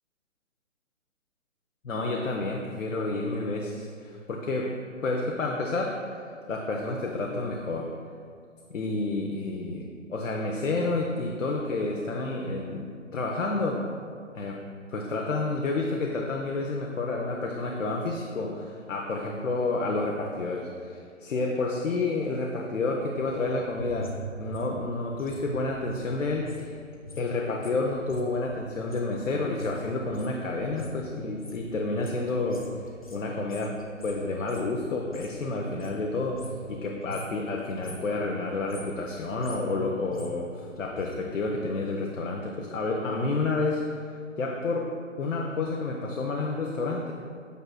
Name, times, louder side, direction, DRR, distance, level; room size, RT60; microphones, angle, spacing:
voice 1, 1.8-4.8 5.0-6.1 6.5-7.9 8.7-13.8 14.3-14.6 14.9-26.8 27.2-32.7 33.1-44.1 44.4-44.9 45.2-47.1, left 3 dB, 75° left, 0 dB, 0.7 m, -30 dB
sound 1, 23.3-26.7 26.9-35.4 35.7-36.8 37.0-37.4 37.7-38.1 38.5-41.2 41.5-41.6, equal, 30° left, 0.4 m, -43 dB
8.2 x 5.7 x 2.2 m, 2.2 s
figure-of-eight pair, 140°, 39 cm